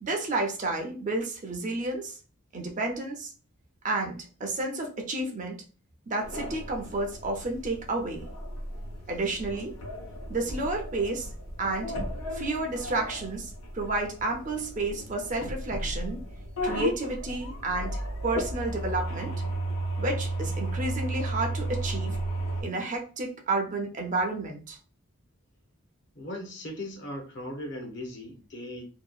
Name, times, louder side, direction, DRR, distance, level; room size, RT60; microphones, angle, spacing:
voice 1, 0.0-2.2 2.5-3.3 3.8-5.6 6.1-8.3 9.1-9.8 10.3-11.3 11.6-11.9 12.3-16.3 16.6-19.3 20.0-22.2 22.6-24.8, right 2 dB, 35° right, 0.5 m, -31 dB
sound 1, 6.2-22.6, right 1 dB, 75° left, 0.9 m, -34 dB
voice 2, 26.1-28.8, left 1 dB, 50° left, 0.7 m, -38 dB
2.7 x 2.2 x 2.3 m
head